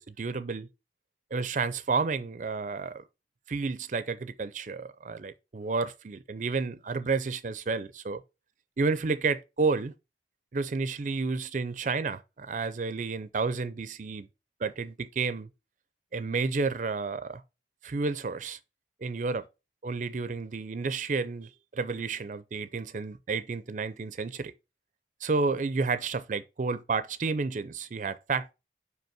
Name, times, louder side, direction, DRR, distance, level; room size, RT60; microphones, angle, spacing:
voice 1, 0.1-0.7 1.3-3.0 3.5-8.2 8.8-9.9 10.5-14.3 14.6-15.5 16.1-17.4 17.8-18.6 19.0-19.5 19.8-24.5 25.2-28.5, right 4 dB, 45° right, 0.4 m, -31 dB
5.4 x 4.8 x 5.9 m
head